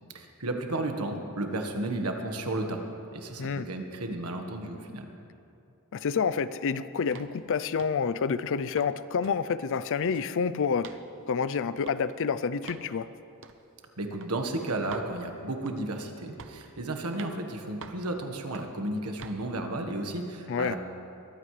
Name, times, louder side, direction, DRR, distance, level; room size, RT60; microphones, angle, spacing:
voice 1, 0.1-2.8 3.1-5.1 14.0-20.8, right 2 dB, 90° right, 4 dB, 1.4 m, -33 dB
voice 2, 5.9-10.9 11.3-13.1 20.5-20.8, left 6 dB, 60° left, 15 dB, 0.5 m, -28 dB
sound 1, 7.1-7.4 7.8-8.0 8.5-8.9 9.2-9.4 9.7-10.3 10.8-11.0 11.8-12.0 12.6-12.9 13.4-13.6 14.2-14.3 14.9-15.1 15.7-15.9 16.4-16.7 17.1-17.4 17.8-18.1 18.5-18.8 19.2-19.4, right 5 dB, 60° right, 0.8 m, -46 dB
22.0 x 15.0 x 3.3 m, 2.7 s
head